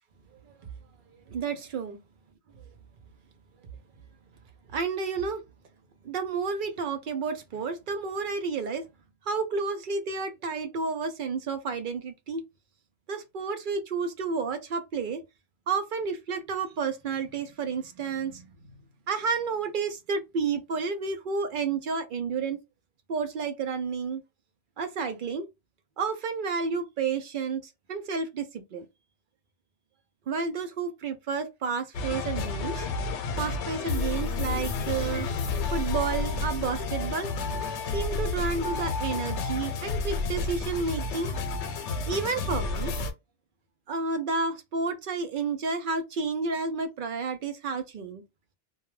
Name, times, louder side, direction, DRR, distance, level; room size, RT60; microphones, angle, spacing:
voice 1, 1.3-2.0 4.7-5.4 6.0-8.8 9.2-12.4 13.1-15.2 15.7-18.5 19.1-22.6 23.1-24.2 24.8-25.5 26.0-28.8 30.3-32.9 33.4-35.3 35.7-37.3 37.9-41.3 42.1-42.9 43.9-48.2, right 5 dB, 60° right, 0.6 m, -31 dB
sound 1, 31.9-43.1, left 3 dB, 85° left, 0.9 m, -31 dB
2.3 x 2.2 x 3.0 m
omnidirectional pair, 1.2 m